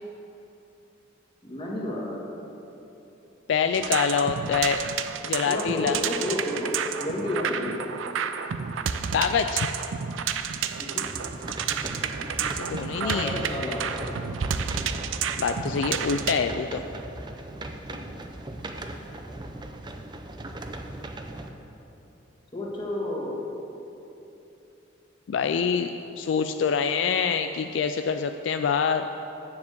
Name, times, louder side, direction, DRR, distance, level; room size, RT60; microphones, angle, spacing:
voice 1, 1.4-2.2 5.5-7.8 10.8-11.1 13.0-14.1 17.9-18.1 22.5-23.4, left 1 dB, 25° left, -4 dB, 1.8 m, -31 dB
voice 2, 3.5-4.8 5.2-6.0 9.1-9.7 12.6-13.3 15.4-16.8 25.3-29.1, left 6 dB, 70° left, 7 dB, 0.3 m, -25 dB
sound 1, 3.7-16.4, right 7 dB, 85° right, 0.5 m, -31 dB
sound 2, 11.0-21.5, right 1 dB, 25° right, 0.5 m, -38 dB
7.3 x 7.3 x 7.9 m, 2.9 s
head